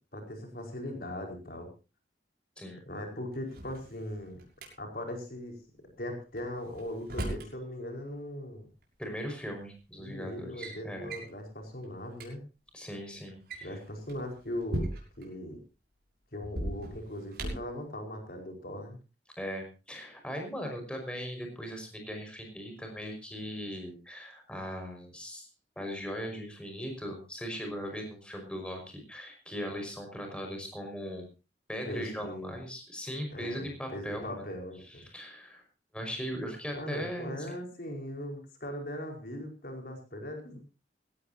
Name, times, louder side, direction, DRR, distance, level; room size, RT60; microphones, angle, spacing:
voice 1, 0.1-1.7 2.9-4.4 4.8-5.6 6.0-8.7 10.0-12.4 13.6-14.9 15.2-15.6 16.3-19.0 31.8-32.6 33.3-35.0 36.7-40.6, left 1 dB, 55° left, 2 dB, 5.0 m, -39 dB
Drawer open or close, 3.3-4.7 6.4-7.5 8.8-8.9 9.7-10.0 10.3-10.8 11.1-11.3 11.8-11.9 12.1-12.3 13.3-15.3 16.4-17.8, right 1 dB, 60° right, 6.4 m, -38 dB
voice 2, 9.0-11.1 12.7-13.8 19.4-25.5 25.8-31.3 31.7-34.4 35.0-35.6 35.9-37.4, equal, 5° left, 3 dB, 5.5 m, -39 dB
19.5 x 17.5 x 2.8 m, 0.31 s
head